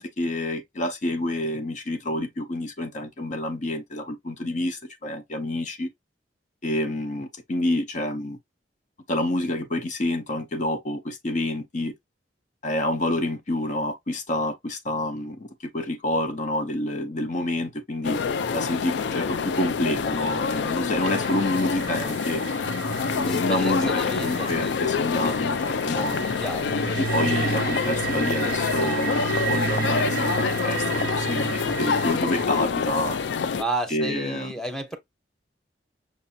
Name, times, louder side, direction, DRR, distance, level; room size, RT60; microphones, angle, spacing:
voice 1, 0.0-5.9 6.6-8.4 9.1-11.9 12.6-15.5 15.7-18.2 18.5-22.5 23.1-26.2 26.8-33.2 33.9-34.5, left 1 dB, 45° left, 0.7 m, -28 dB
sound 1, 18.0-33.6, left 5 dB, 70° left, 0.4 m, -26 dB
sound 2, 21.0-32.4, right 8 dB, 55° right, 0.5 m, -33 dB
voice 2, 23.3-24.7 26.4-26.7 33.6-35.0, right 2 dB, 5° left, 0.9 m, -32 dB
5.9 x 2.6 x 2.7 m
head